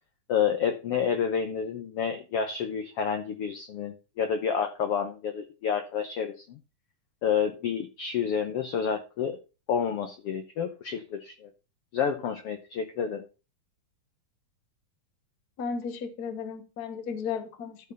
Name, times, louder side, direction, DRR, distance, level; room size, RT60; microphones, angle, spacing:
voice 1, 0.3-6.6 7.2-9.4 9.7-11.5 11.9-13.2, left 7 dB, 80° left, 7 dB, 1.3 m, -29 dB
voice 2, 15.6-17.9, left 6 dB, 60° left, 7 dB, 1.0 m, -34 dB
13.5 x 4.5 x 5.4 m, 0.32 s
omnidirectional pair, 3.9 m